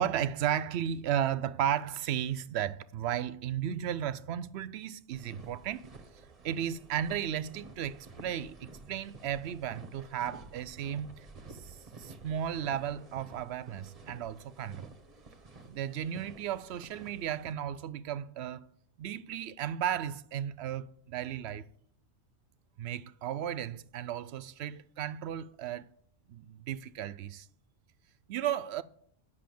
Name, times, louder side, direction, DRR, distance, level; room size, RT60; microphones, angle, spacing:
voice 1, 0.0-5.9 6.4-11.3 11.6-14.9 15.7-18.6 19.0-21.7 22.8-25.9 26.3-27.5 28.3-28.8, right 10 dB, 75° right, 0.8 m, -34 dB
sound 1, 5.1-17.5, right 3 dB, 35° right, 1.0 m, -51 dB
10.5 x 6.2 x 7.6 m
omnidirectional pair, 1.1 m